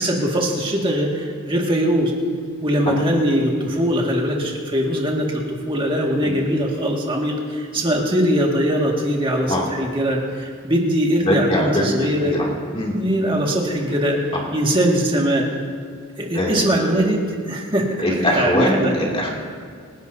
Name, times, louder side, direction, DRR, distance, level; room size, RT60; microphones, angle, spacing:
voice 1, 0.0-2.1 2.6-12.4 12.9-14.2 14.5-15.5 16.2-19.0, equal, 25° right, -1 dB, 2.0 m, -21 dB
voice 2, 11.2-12.5 12.7-12.9 16.3-16.7 18.0-19.3, equal, 25° left, -2 dB, 2.6 m, -22 dB
28.0 x 11.5 x 2.8 m, 2.2 s
head